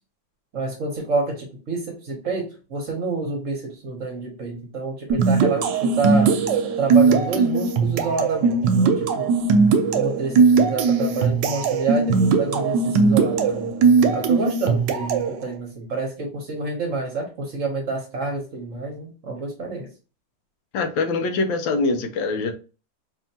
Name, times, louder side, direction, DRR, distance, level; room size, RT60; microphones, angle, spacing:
voice 1, 0.5-6.3 6.8-9.3 9.9-13.7 14.1-19.9, right 4 dB, 55° right, 1 dB, 1.0 m, -28 dB
sound 1, 5.1-15.4, right 4 dB, 75° right, 1.2 m, -19 dB
voice 2, 20.7-22.5, left 3 dB, 90° left, 7 dB, 1.4 m, -23 dB
4.7 x 2.8 x 2.7 m, 0.33 s
omnidirectional pair, 2.1 m